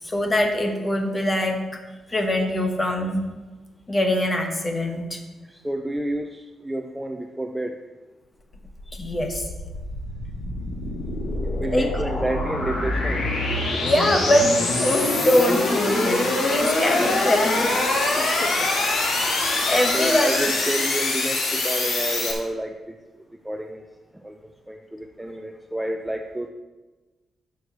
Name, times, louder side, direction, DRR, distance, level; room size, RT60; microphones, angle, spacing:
voice 1, 0.0-1.6 2.1-3.2 3.9-5.2 8.9-9.5 11.7-12.0 13.8-17.7 19.3-20.5, left 1 dB, 20° left, 3 dB, 1.2 m, -23 dB
voice 2, 5.4-7.8 11.6-13.3 18.2-18.7 19.9-22.9 23.4-23.8 24.1-26.5, right 1 dB, 5° right, 4 dB, 0.4 m, -30 dB
sound 1, 8.5-22.3, left 2 dB, 75° left, 2.9 m, -24 dB
11.0 x 4.7 x 6.7 m, 1.2 s
wide cardioid pair, 165°, 0 cm